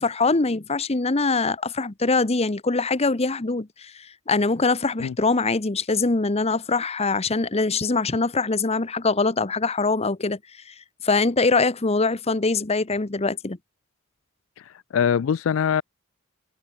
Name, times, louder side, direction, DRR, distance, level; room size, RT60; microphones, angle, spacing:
voice 1, 0.0-10.4 11.0-13.6, left 3 dB, 30° left, 1.0 m, -23 dB
voice 2, 14.6-15.8, left 7 dB, 70° left, 0.4 m, -23 dB
head